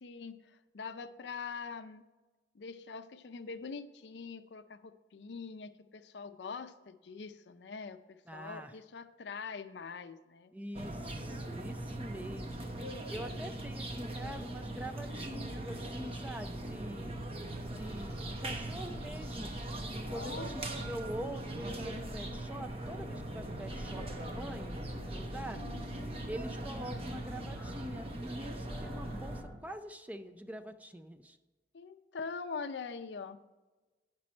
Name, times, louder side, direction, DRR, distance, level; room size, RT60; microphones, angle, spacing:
voice 1, 0.0-2.0 2.5-10.5 13.3-13.5 20.0-20.9 25.5-26.1 31.7-33.4, left 5 dB, 75° left, 10 dB, 0.5 m, -44 dB
voice 2, 8.3-8.7 10.5-12.7 13.1-17.2 17.7-19.5 19.9-25.6 26.3-31.4, equal, 10° right, 7 dB, 0.4 m, -44 dB
sound 1, 10.7-29.4, right 1 dB, 35° right, 0.8 m, -40 dB
sound 2, 17.6-29.6, equal, 10° left, 1.5 m, -49 dB
9.6 x 6.1 x 4.3 m, 1.2 s
head